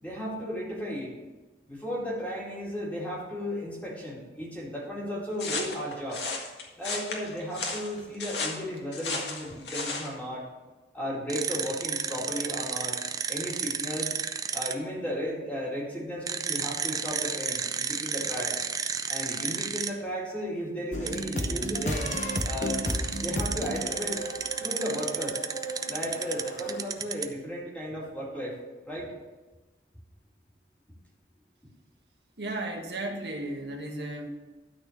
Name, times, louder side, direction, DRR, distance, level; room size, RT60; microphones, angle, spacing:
voice 1, 0.0-1.1 1.7-6.3 6.8-10.5 10.9-13.0 13.3-14.1 14.5-18.6 19.1-22.1 22.4-22.8 23.2-24.3 24.6-25.4 25.9-28.6 28.9-29.1, equal, 10° left, -4 dB, 2.1 m, -35 dB
sound 1, 5.4-10.1, left 3 dB, 80° left, 1.8 m, -34 dB
sound 2, 11.3-14.7 16.3-19.9 21.1-27.3, right 6 dB, 20° right, 0.4 m, -32 dB
sound 3, 20.9-26.8, equal, 45° left, 0.9 m, -34 dB
voice 2, 32.4-34.3, right 2 dB, 70° right, 2 dB, 1.4 m, -34 dB
12.5 x 4.3 x 7.1 m, 1.2 s
head